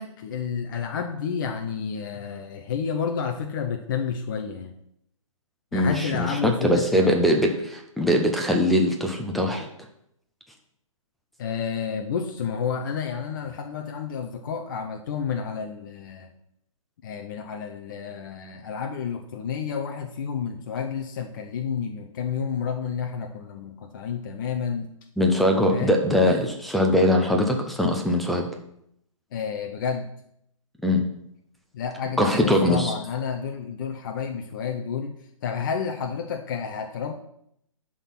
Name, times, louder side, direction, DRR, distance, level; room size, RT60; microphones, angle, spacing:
voice 1, 0.0-4.7 5.7-7.2 11.4-16.3 17.0-24.9 25.7-26.0 29.3-30.1 31.7-35.2 35.4-37.2, left 6 dB, 35° left, 4 dB, 0.7 m, -30 dB
voice 2, 5.7-9.7 25.2-28.5 30.8-31.0 32.2-32.9, left 1 dB, ahead, 2 dB, 0.4 m, -22 dB
11.0 x 3.7 x 5.9 m, 0.73 s
hypercardioid pair, 160°, 18 cm